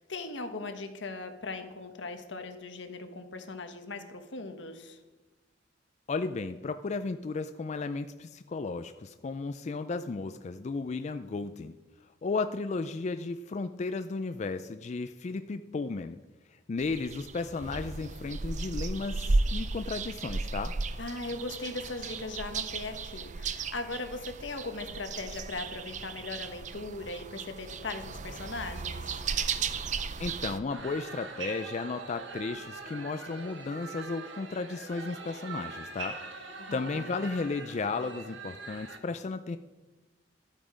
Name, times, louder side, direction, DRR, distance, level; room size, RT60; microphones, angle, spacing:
voice 1, 0.0-5.0 21.0-29.2 36.6-37.1, left 3 dB, 85° left, 6 dB, 1.3 m, -39 dB
voice 2, 6.1-11.8 12.0-16.2 16.7-20.8 30.2-39.6, left 4 dB, 40° left, 9 dB, 0.4 m, -34 dB
sound 1, 16.8-30.6, right 4 dB, 40° right, 0.5 m, -35 dB
sound 2, 30.7-39.0, right 4 dB, 90° right, 1.5 m, -43 dB
12.5 x 8.9 x 5.0 m, 1.2 s
head